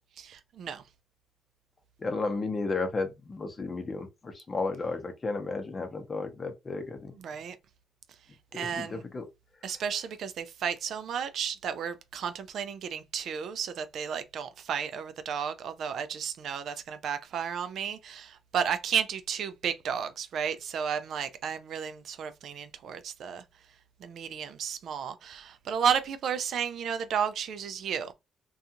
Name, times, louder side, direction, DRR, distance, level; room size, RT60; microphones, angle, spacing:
voice 1, 0.2-0.8 7.1-7.6 8.5-9.0 9.6-23.4 24.0-28.1, right 7 dB, 70° right, 0.4 m, -33 dB
voice 2, 2.0-4.1 4.3-7.1 8.5-9.2, left 3 dB, 30° left, 0.7 m, -33 dB
2.5 x 2.3 x 2.8 m
cardioid pair, 90°, 0 cm